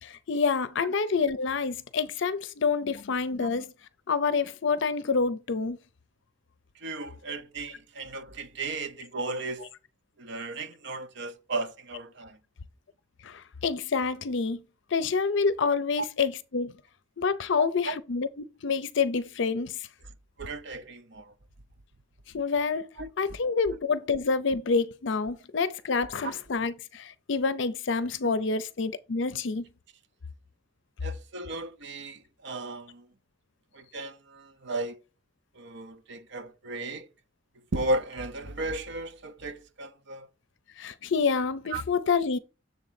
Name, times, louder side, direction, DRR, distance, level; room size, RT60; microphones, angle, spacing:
voice 1, 0.0-3.7 4.1-5.8 13.2-14.6 14.9-16.7 17.2-19.9 22.3-22.9 23.2-29.7 40.8-42.4, left 5 dB, 65° left, 0.5 m, -27 dB
voice 2, 6.8-9.7 10.2-12.4 16.0-16.1 17.9-18.0 20.4-21.3 23.0-23.1 26.2-26.3 31.0-33.1 33.7-35.0 35.6-37.1 37.7-40.3 41.7-41.8, right 2 dB, 60° right, 0.8 m, -35 dB
6.9 x 3.7 x 5.7 m
head